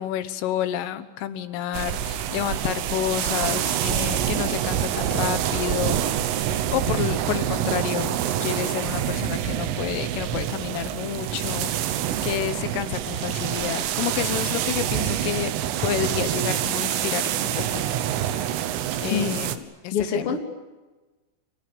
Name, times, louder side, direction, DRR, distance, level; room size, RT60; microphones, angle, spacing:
voice 1, 0.0-6.0 6.7-15.5 15.8-17.8 19.0-20.4, left 11 dB, 85° left, 11 dB, 3.8 m, -30 dB
sound 1, 1.7-19.6, right 11 dB, 90° right, 4.0 m, -26 dB
voice 2, 19.9-20.5, left 6 dB, 30° left, 3 dB, 3.1 m, -25 dB
29.5 x 27.0 x 7.2 m, 1.2 s
omnidirectional pair, 5.7 m